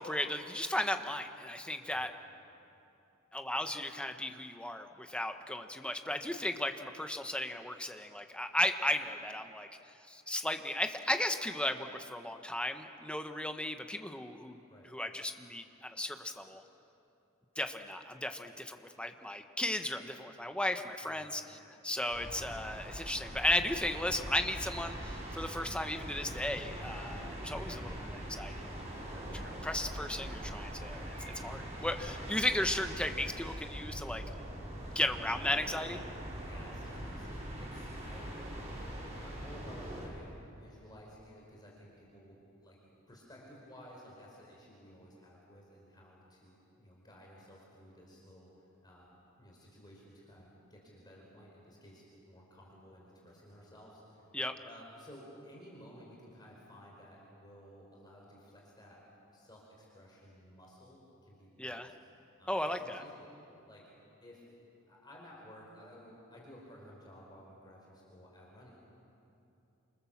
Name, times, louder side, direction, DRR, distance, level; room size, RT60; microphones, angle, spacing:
voice 1, 0.0-2.1 3.3-9.7 10.1-14.6 14.9-16.6 17.6-21.4 21.8-28.6 29.3-34.2 34.9-36.0 54.3-54.5 61.6-61.9 62.5-63.0, left 1 dB, 5° left, 6 dB, 1.2 m, -35 dB
voice 2, 21.0-21.4 34.7-35.1 36.3-38.7 39.2-49.1 49.4-54.2 54.6-59.0 59.3-62.0 62.4-63.3 63.7-63.8 64.2-68.7, equal, 20° left, -3 dB, 5.0 m, -55 dB
sound 1, 22.1-40.1, equal, 35° right, 5.9 m, -42 dB
28.5 x 26.0 x 7.3 m, 2.8 s
head